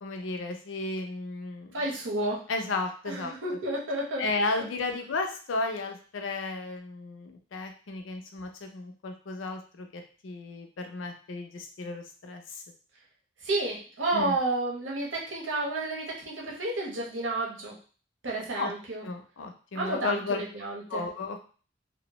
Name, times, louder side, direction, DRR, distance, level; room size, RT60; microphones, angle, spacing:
voice 1, 0.0-1.8 2.5-3.3 4.2-12.6 14.1-14.4 18.5-18.7 19.0-20.4 20.9-21.5, left 3 dB, 85° left, 4 dB, 0.5 m, -34 dB
voice 2, 1.7-2.4 3.0-4.2 13.4-17.7 18.2-19.0 19.7-21.0, right 2 dB, 80° right, -3 dB, 0.8 m, -31 dB
2.6 x 2.0 x 2.9 m, 0.39 s
head